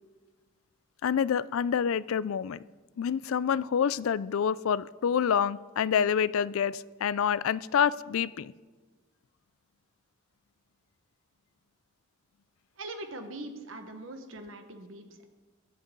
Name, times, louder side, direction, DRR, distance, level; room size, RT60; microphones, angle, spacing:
voice 1, 1.0-2.6 3.0-8.5, left 7 dB, 85° left, 19 dB, 0.4 m, -27 dB
voice 2, 12.8-15.2, right 2 dB, 75° right, 6 dB, 1.4 m, -42 dB
22.5 x 8.0 x 3.9 m, 1.3 s
head